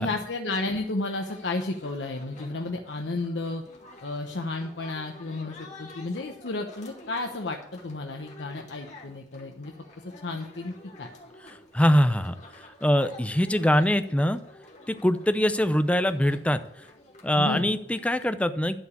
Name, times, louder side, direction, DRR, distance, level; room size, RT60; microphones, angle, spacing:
voice 1, 0.0-3.6 4.0-9.7 10.2-11.1 17.4-17.7, left 2 dB, 85° left, 3 dB, 1.0 m, -32 dB
sound 1, 0.7-18.3, left 1 dB, 40° left, 2.2 m, -50 dB
voice 2, 11.4-12.3 12.8-14.4 14.9-16.6 17.2-18.8, equal, 5° left, 10 dB, 0.6 m, -23 dB
11.5 x 4.9 x 8.2 m, 0.70 s
head